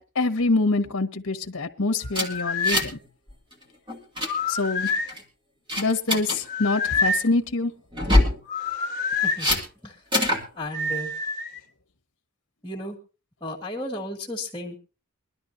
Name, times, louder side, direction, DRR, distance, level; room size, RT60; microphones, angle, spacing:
voice 1, 0.0-3.0 4.5-4.9 5.8-7.7, left 3 dB, 60° left, 1.2 m, -25 dB
sound 1, 2.0-2.9 4.2-5.1 6.4-7.3 8.5-9.4 10.7-11.6, left 4 dB, 35° left, 1.5 m, -27 dB
sound 2, 2.1-3.0 3.3-3.5 3.9-4.3 4.9-5.2 5.7-6.4 7.9-8.4 9.4-9.6 10.1-10.4, left 1 dB, 20° right, 2.3 m, -23 dB
voice 2, 10.5-11.1 12.6-13.0 13.4-14.8, left 1 dB, 15° left, 2.2 m, -33 dB
22.5 x 12.5 x 2.7 m
head